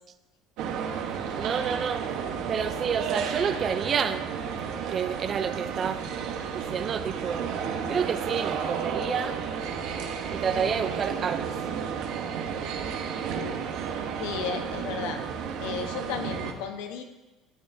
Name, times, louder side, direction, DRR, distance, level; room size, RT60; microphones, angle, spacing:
sound 1, 0.6-16.5, right 7 dB, 70° right, 1.1 m, -32 dB
voice 1, 1.3-2.0 2.5-4.2 4.9-6.0 6.5-7.5 7.9-9.4 10.3-11.5, right 7 dB, 35° right, 10 dB, 0.5 m, -29 dB
voice 2, 14.2-15.2 15.6-17.0, left 6 dB, 85° left, 6 dB, 1.0 m, -34 dB
12.0 x 8.7 x 2.7 m, 1.1 s
cardioid pair, 125°, 0 cm